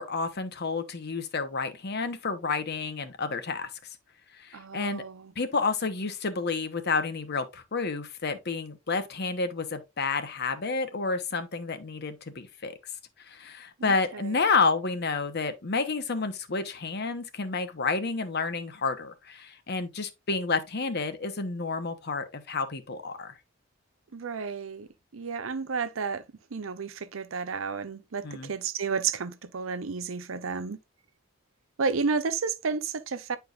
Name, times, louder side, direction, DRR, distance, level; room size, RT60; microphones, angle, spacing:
voice 1, 0.0-3.7 4.3-5.0 5.4-12.7 13.3-23.3 28.2-28.5, left 4 dB, 55° left, 1.0 m, -30 dB
voice 2, 4.5-5.3 13.8-14.4 24.1-24.9 25.1-26.2 26.5-30.8 31.8-33.4, right 5 dB, 85° right, 0.6 m, -32 dB
9.5 x 4.6 x 2.5 m
head